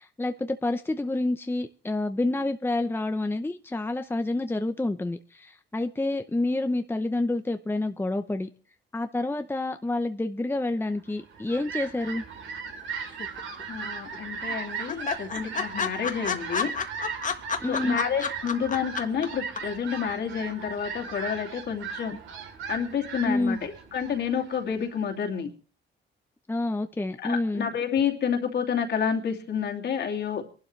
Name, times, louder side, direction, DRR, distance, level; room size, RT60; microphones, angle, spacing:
voice 1, 0.0-8.5 8.9-12.2 17.6-18.0 23.2-23.6 26.5-27.7, left 2 dB, 10° left, 8 dB, 0.8 m, -28 dB
Fowl, 11.1-25.0, right 6 dB, 75° right, 3.6 m, -38 dB
sound 1, 13.2-13.8 14.1-14.2 14.5-14.6 14.9-19.3 19.6-19.7, left 6 dB, 40° left, 1.6 m, -30 dB
voice 2, 13.7-16.7 17.7-22.2 22.7-25.5 27.2-30.4, left 7 dB, 60° left, 2 dB, 2.8 m, -29 dB
23.5 x 12.0 x 3.3 m, 0.39 s
cardioid pair, 90°, 20 cm